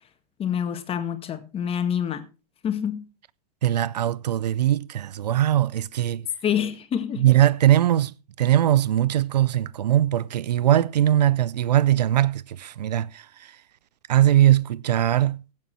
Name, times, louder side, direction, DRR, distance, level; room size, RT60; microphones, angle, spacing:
voice 1, 0.4-2.3 2.6-3.1 6.4-7.3, left 8 dB, 25° left, 1.8 m, -27 dB
voice 2, 3.6-6.3 7.2-13.6 14.1-15.4, right 12 dB, 80° right, 0.5 m, -21 dB
16.0 x 7.4 x 4.5 m
hypercardioid pair, 105°, 21 cm